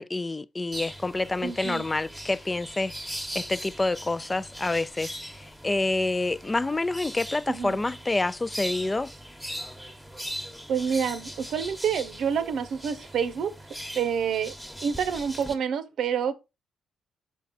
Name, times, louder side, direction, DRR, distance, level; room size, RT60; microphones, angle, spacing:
voice 1, 0.0-9.1, left 2 dB, 20° left, 0.4 m, -28 dB
sound 1, 0.7-15.6, equal, ahead, 1.1 m, -40 dB
voice 2, 1.4-1.9 7.5-7.8 10.7-13.5 13.9-14.5 14.8-16.3, right 7 dB, 70° right, 0.8 m, -28 dB
5.7 x 4.6 x 4.1 m
cardioid pair, 90°, 0 cm